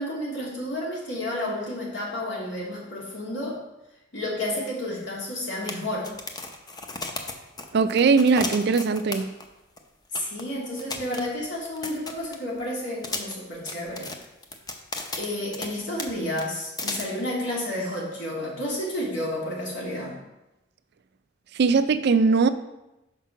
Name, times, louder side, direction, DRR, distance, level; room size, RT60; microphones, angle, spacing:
voice 1, 0.0-3.6 4.1-6.1 10.1-14.1 15.2-20.2, left 1 dB, 80° left, -4 dB, 2.3 m, -31 dB
sound 1, 4.7-4.8 5.0-5.1 5.6-9.5 9.8-9.9 10.1-10.4 10.8-12.6 13.0-15.7 16.0-16.1 16.4-17.0, left 3 dB, 20° left, 0.6 m, -34 dB
voice 2, 7.7-9.3 21.5-22.5, right 4 dB, 60° right, 12 dB, 0.4 m, -20 dB
5.9 x 4.6 x 5.7 m, 0.96 s
head